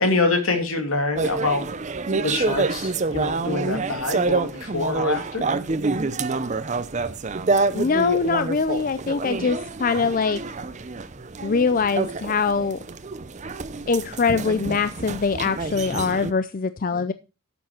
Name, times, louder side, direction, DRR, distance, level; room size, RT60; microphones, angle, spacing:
voice 1, 0.0-1.6 2.1-5.4 16.9-17.0, left 3 dB, 75° left, 5 dB, 2.6 m, -25 dB
sound 1, 1.2-16.3, right 3 dB, 35° right, 0.6 m, -27 dB
voice 2, 7.7-10.4 11.4-12.8 13.9-17.1, left 5 dB, 40° left, 12 dB, 0.4 m, -23 dB
12.0 x 7.1 x 4.4 m, 0.30 s
head